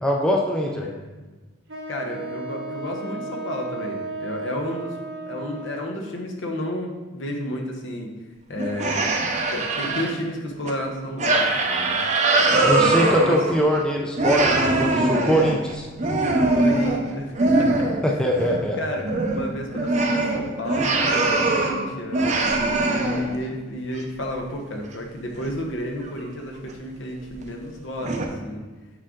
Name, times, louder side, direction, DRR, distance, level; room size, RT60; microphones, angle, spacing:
voice 1, 0.0-0.9 12.5-15.8 18.0-18.8, equal, 5° left, -1 dB, 0.5 m, -22 dB
voice 2, 0.8-1.3 1.9-5.0 5.3-8.1 8.5-9.2 9.5-12.0 12.5-13.4 15.1-15.6 16.5-17.9 18.1-22.4 22.9-28.7, left 1 dB, 65° left, 1 dB, 1.0 m, -32 dB
Wind instrument woodwind instrument, 1.7-6.1, right 3 dB, 70° right, 1.5 m, -34 dB
sound 1, 8.6-10.1 10.6-10.7 11.2-13.8 14.2-18.1 18.3-18.7 19.0-21.8 22.1-23.4 23.9-24.0 25.4-25.5 26.0-26.3 26.7-26.8 27.4-27.5 28.0-28.3, right 2 dB, 35° right, 0.7 m, -22 dB
6.5 x 4.9 x 3.8 m, 1.3 s
head